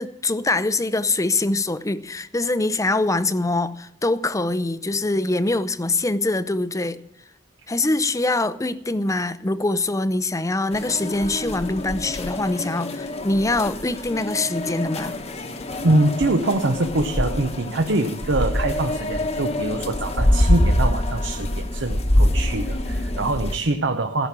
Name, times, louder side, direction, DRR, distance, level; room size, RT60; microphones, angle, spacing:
voice 1, 0.0-7.0 7.7-15.2, left 2 dB, 15° left, 0.6 m, -24 dB
sound 1, 10.7-23.6, left 1 dB, 35° left, 1.1 m, -25 dB
voice 2, 15.8-24.3, right 2 dB, 70° right, 0.9 m, -24 dB
15.0 x 6.1 x 8.8 m
head